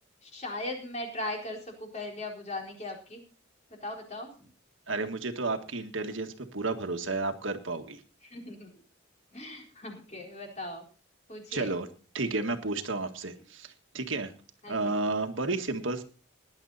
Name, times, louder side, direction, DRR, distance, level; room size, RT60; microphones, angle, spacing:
voice 1, 0.2-3.2 3.8-4.3 8.2-8.7 9.3-10.8 11.3-11.7 14.6-15.0, left 1 dB, 35° left, 1 dB, 4.2 m, -38 dB
voice 2, 4.9-8.0 11.5-11.9 12.1-14.3 14.7-16.0, right 3 dB, 75° right, 6 dB, 1.8 m, -32 dB
18.5 x 10.5 x 4.2 m, 0.36 s
head